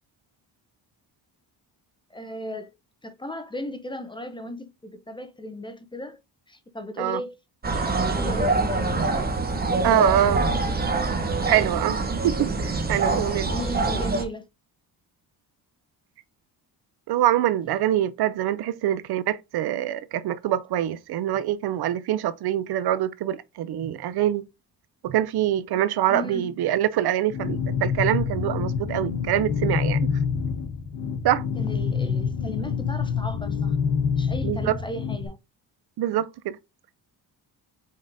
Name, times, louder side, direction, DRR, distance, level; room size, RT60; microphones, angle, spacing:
voice 1, 2.1-2.7 3.0-6.2 6.5-7.4 7.6-9.3 9.6-10.6 13.4-14.4 26.1-26.5 31.6-33.8 34.1-35.4, left 1 dB, 10° left, 0.6 m, -36 dB
sound 1, 7.6-14.2, right 3 dB, 25° right, 0.8 m, -25 dB
voice 2, 9.8-10.4 11.5-12.0 12.2-13.5 17.1-24.4 25.0-30.1 31.2-31.4 34.4-34.7 36.0-36.6, right 12 dB, 70° right, 0.5 m, -24 dB
sound 2, 27.3-35.3, left 6 dB, 90° left, 1.0 m, -26 dB
5.3 x 3.8 x 2.5 m
cardioid pair, 125°, 41 cm